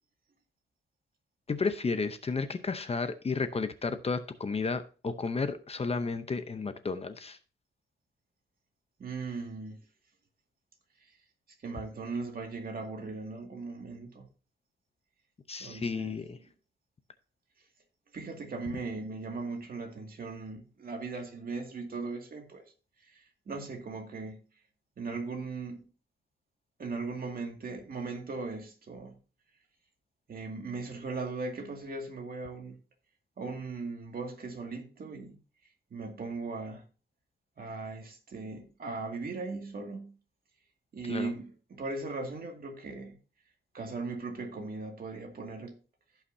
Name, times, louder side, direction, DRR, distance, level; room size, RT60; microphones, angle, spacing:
voice 1, 1.5-7.4 15.5-16.4 41.1-41.3, left 4 dB, 30° left, 0.7 m, -32 dB
voice 2, 9.0-9.8 11.6-14.3 15.6-16.4 18.1-22.6 23.0-24.4 25.0-25.8 26.8-29.2 30.3-32.8 33.4-35.4 35.9-36.8 37.6-40.1 40.9-43.2 43.7-45.8, right 3 dB, 50° right, 2.2 m, -38 dB
15.5 x 5.8 x 2.7 m
wide cardioid pair, 130°, 19 cm